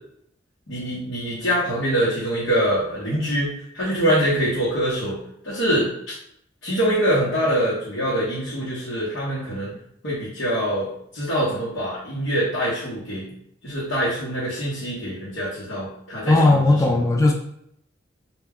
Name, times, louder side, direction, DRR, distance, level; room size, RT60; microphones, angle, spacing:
voice 1, 0.7-3.5 3.7-5.2 5.4-5.9 6.6-9.7 10.0-10.9 11.1-13.2 13.6-16.6 17.0-17.1, equal, 85° left, -9 dB, 0.9 m, -24 dB
voice 2, 16.3-17.3, left 2 dB, 15° left, 0 dB, 0.3 m, -17 dB
2.2 x 2.2 x 3.5 m, 0.72 s
head